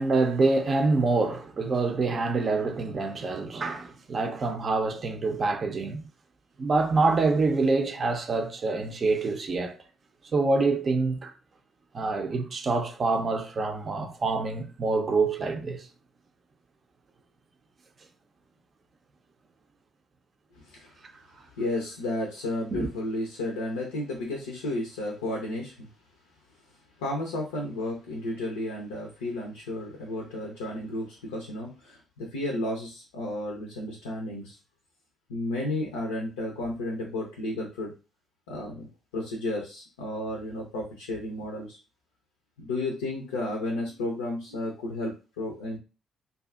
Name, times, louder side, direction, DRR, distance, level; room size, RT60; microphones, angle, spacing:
voice 1, 0.0-6.1 6.6-9.8 10.3-11.3 11.9-15.8 22.7-22.9, right 3 dB, 45° right, 0.5 m, -26 dB
voice 2, 21.5-25.9 27.0-34.6 35.3-37.9 38.5-41.8 42.6-45.8, left 1 dB, 80° left, 0.4 m, -33 dB
2.5 x 2.3 x 2.4 m
hypercardioid pair, 45°, 0 cm